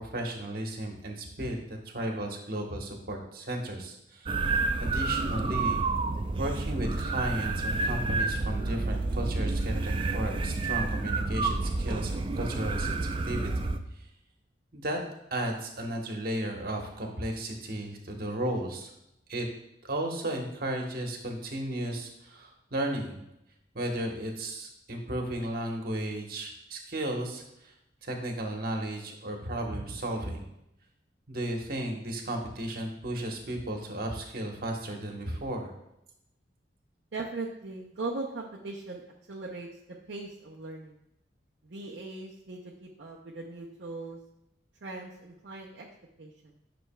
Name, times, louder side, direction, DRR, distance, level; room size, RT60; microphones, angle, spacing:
voice 1, 0.0-4.3 4.8-5.8 6.4-13.5 14.7-15.0 15.3-18.9 19.3-19.5 19.8-23.2 23.7-27.7 28.0-30.5 31.3-35.7, right 1 dB, 55° right, 2 dB, 1.2 m, -34 dB
sound 1, 4.3-13.8, right 3 dB, 30° right, 0.4 m, -29 dB
voice 2, 37.1-39.0 39.3-39.8 40.1-41.0 41.6-44.2 44.8-45.9 46.2-46.6, right 3 dB, 70° right, -3 dB, 0.7 m, -39 dB
10.0 x 6.1 x 2.3 m, 0.83 s
head